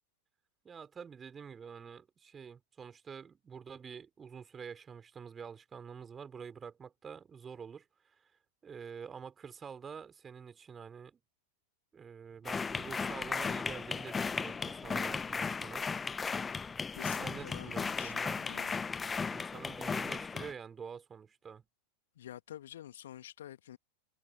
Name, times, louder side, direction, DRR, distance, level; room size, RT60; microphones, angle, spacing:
voice 1, 0.6-8.2 8.6-11.2 11.9-15.9 17.2-18.4 19.3-21.7, right 6 dB, 20° right, 3.9 m, -47 dB
sound 1, 12.5-20.5, left 5 dB, 15° left, 0.9 m, -36 dB
voice 2, 17.0-18.8 22.2-23.8, left 11 dB, 60° left, 1.8 m, -49 dB
figure-of-eight pair, 90°, 0 cm